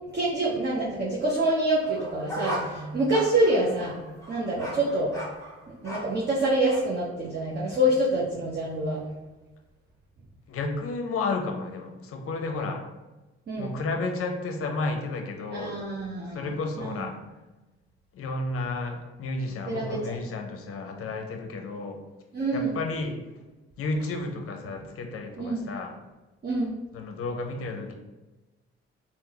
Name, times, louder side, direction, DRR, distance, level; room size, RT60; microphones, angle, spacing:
voice 1, 0.1-4.0 4.3-5.1 5.8-9.0 13.5-13.7 15.5-17.0 19.7-20.2 22.3-22.8 25.4-25.7 26.4-26.8, right 1 dB, 35° right, -5 dB, 0.8 m, -26 dB
sound 1, 1.8-6.2 6.7-6.8, equal, 10° left, 1.1 m, -37 dB
voice 2, 10.5-12.8 13.6-15.8 16.3-17.1 18.1-22.0 22.5-23.2 23.8-26.0 26.9-27.9, left 3 dB, 50° left, 4 dB, 0.6 m, -32 dB
3.5 x 2.1 x 2.8 m, 1.1 s
hypercardioid pair, 40°, 30 cm